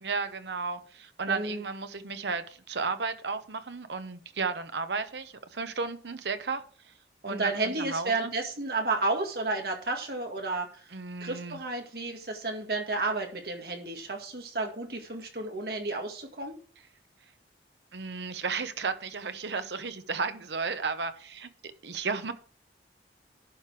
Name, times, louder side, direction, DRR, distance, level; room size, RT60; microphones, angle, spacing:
voice 1, 0.0-6.9 7.3-8.3 10.9-11.6 17.9-21.5 21.8-22.3, right 4 dB, 80° right, 10 dB, 0.9 m, -34 dB
voice 2, 1.3-1.6 7.2-10.7 11.2-16.5, right 3 dB, 60° right, 3 dB, 1.9 m, -32 dB
11.5 x 5.1 x 4.9 m, 0.43 s
head